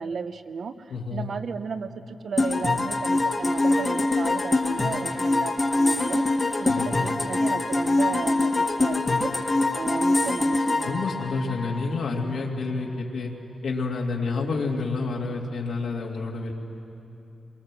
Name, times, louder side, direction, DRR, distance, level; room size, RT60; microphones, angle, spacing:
voice 1, 0.0-0.7 1.1-6.2 6.6-6.7 7.0-8.5 8.8-9.3 9.7-10.9, right 5 dB, 55° right, 10 dB, 0.9 m, -34 dB
voice 2, 0.9-1.3 6.6-6.9 10.8-13.3 13.6-16.5, left 3 dB, 70° left, -1 dB, 2.3 m, -29 dB
sound 1, 2.4-12.1, left 2 dB, 25° left, 1.4 m, -24 dB
27.5 x 23.0 x 7.5 m, 2.9 s
wide cardioid pair, 160°, 0 cm